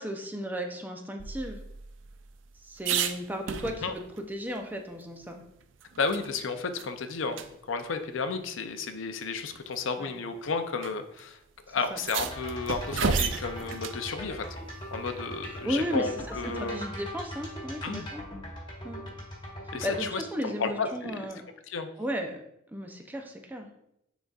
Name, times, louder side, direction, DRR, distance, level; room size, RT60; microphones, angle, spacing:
voice 1, 0.0-1.6 2.6-4.0 4.3-5.4 10.0-10.1 11.9-12.0 15.6-16.1 16.5-18.2 18.8-19.0 19.8-21.4 22.0-22.4 22.7-23.7, equal, 10° right, 3 dB, 0.5 m, -34 dB
sound 1, 1.2-4.2 4.6-4.7 5.0-6.4 6.8-6.9 7.3-7.5 8.5-8.6 9.5-9.8 10.8-10.9 11.2-11.3 11.8-14.0 16.3-16.8, right 6 dB, 70° right, 0.4 m, -33 dB
voice 2, 6.0-11.4 11.7-14.5 14.9-16.8 17.8-18.1 19.7-21.3 21.7-21.9, left 4 dB, 75° left, 8 dB, 0.6 m, -32 dB
sound 2, 12.2-20.1, equal, 25° left, 1.5 m, -40 dB
10.0 x 4.0 x 2.4 m, 0.79 s
head